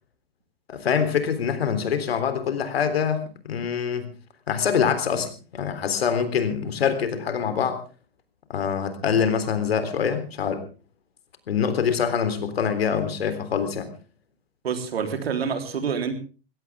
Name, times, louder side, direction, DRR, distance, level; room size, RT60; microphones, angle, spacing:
voice 1, 0.7-3.2 3.4-4.1 4.5-7.8 8.5-10.6 11.5-13.9, left 7 dB, 85° left, 10 dB, 3.7 m, -24 dB
voice 2, 14.6-16.1, right 6 dB, 90° right, 7 dB, 3.8 m, -27 dB
21.0 x 16.5 x 3.6 m, 0.35 s
hypercardioid pair, 130°, 30 cm